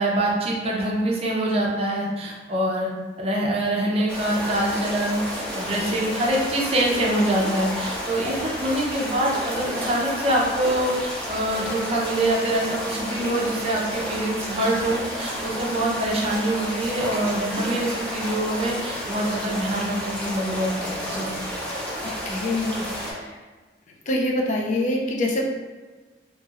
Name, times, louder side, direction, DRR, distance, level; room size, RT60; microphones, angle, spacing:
voice 1, 0.0-2.9 3.2-21.3, right 1 dB, 35° right, -3 dB, 0.5 m, -25 dB
sound 1, 4.1-23.1, equal, 5° left, 0.7 m, -31 dB
voice 2, 22.3-23.4 24.1-25.4, left 1 dB, 45° left, -1 dB, 0.4 m, -25 dB
2.9 x 2.8 x 2.4 m, 1.3 s
head